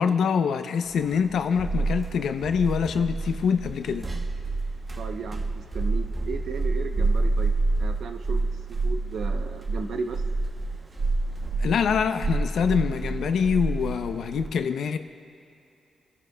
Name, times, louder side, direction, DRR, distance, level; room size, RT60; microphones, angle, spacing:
voice 1, 0.0-4.1 11.6-15.0, left 6 dB, 75° left, 8 dB, 0.6 m, -25 dB
sound 1, 1.0-14.5, right 3 dB, 30° right, 0.8 m, -28 dB
voice 2, 5.0-7.5 7.8-10.2, right 4 dB, 70° right, 6 dB, 0.7 m, -35 dB
29.0 x 11.0 x 2.3 m, 2.7 s
cardioid pair, 105°, 0 cm